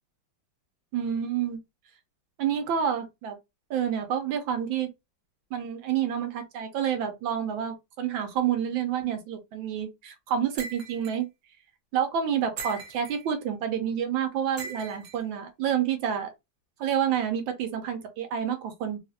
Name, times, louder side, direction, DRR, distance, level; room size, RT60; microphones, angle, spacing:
voice 1, 0.9-1.6 2.4-3.4 3.7-4.9 5.5-11.3 11.9-16.3 16.8-19.0, right 8 dB, 80° right, 1.4 m, -28 dB
sound 1, 10.6-11.2 12.6-13.2 14.6-15.2, right 4 dB, 55° right, 1.1 m, -39 dB
3.3 x 2.4 x 2.6 m
omnidirectional pair, 2.2 m